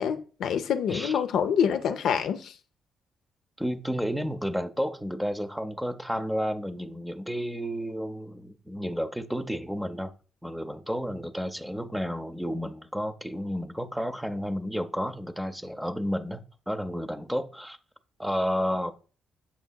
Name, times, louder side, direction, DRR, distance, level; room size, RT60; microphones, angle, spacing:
voice 1, 0.0-2.6, left 8 dB, 75° left, 0.4 m, -26 dB
voice 2, 3.6-10.1 10.4-17.8 18.2-18.9, equal, 5° right, 0.5 m, -31 dB
7.0 x 2.7 x 2.2 m
cardioid pair, 90°, 0 cm